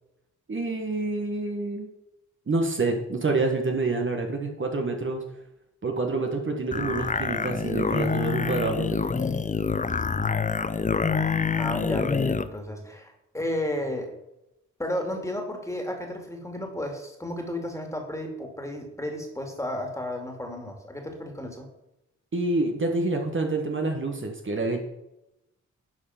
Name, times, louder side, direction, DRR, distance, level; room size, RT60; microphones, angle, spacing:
voice 1, 0.5-1.9 2.5-5.2 5.8-8.9 22.3-24.8, right 3 dB, 40° right, 3 dB, 1.4 m, -27 dB
sound 1, 6.7-12.5, left 5 dB, 25° left, 0.6 m, -26 dB
voice 2, 11.6-14.1 14.8-21.7, left 1 dB, 10° left, 3 dB, 2.4 m, -33 dB
10.5 x 4.7 x 5.8 m, 0.89 s
cardioid pair, 60°, 30 cm